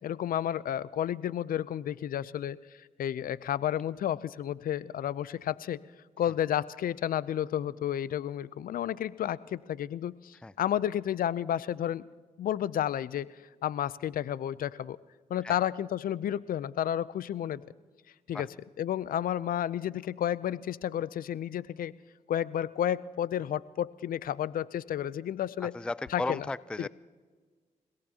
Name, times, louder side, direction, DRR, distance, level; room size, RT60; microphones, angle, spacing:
voice 1, 0.0-2.6 3.0-5.8 6.2-12.0 12.4-13.3 13.6-15.0 15.3-17.6 18.3-18.5 18.8-21.9 22.3-25.7 26.1-26.5 26.8-26.9, left 10 dB, 70° left, 19 dB, 0.5 m, -31 dB
voice 2, 25.6-26.9, left 2 dB, 5° left, 18 dB, 0.4 m, -35 dB
28.5 x 17.5 x 2.9 m, 1.5 s
supercardioid pair, 50°, 15 cm